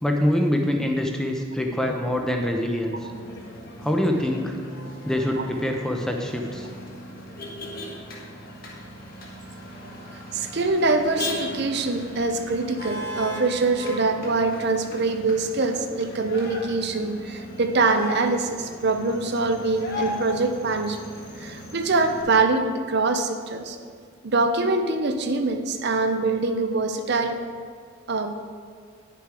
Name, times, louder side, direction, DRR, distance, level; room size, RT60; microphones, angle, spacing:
voice 1, 0.0-3.1 3.8-4.6 5.0-6.7, left 1 dB, 5° left, 2 dB, 0.6 m, -25 dB
Motor vehicle (road), 3.0-22.2, left 1 dB, 45° left, 1.5 m, -37 dB
voice 2, 10.3-21.0 21.4-23.8 24.2-27.4 28.1-28.4, right 3 dB, 55° right, 7 dB, 0.6 m, -24 dB
9.8 x 6.8 x 4.8 m, 2.1 s
head